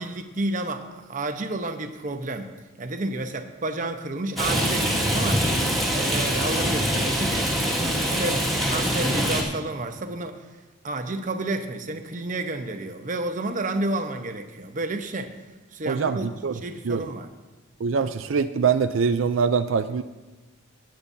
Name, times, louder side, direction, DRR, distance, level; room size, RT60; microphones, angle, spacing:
voice 1, 0.0-2.5 2.8-5.5 5.9-10.4 10.8-15.3 15.7-16.3 16.5-17.3, right 2 dB, 40° right, 6 dB, 0.9 m, -31 dB
Rain, 4.4-9.4, equal, ahead, 1.9 m, -24 dB
voice 2, 15.9-16.5 16.8-17.1 17.8-20.0, right 5 dB, 85° right, 9 dB, 0.4 m, -23 dB
18.0 x 8.9 x 2.7 m, 1.2 s
head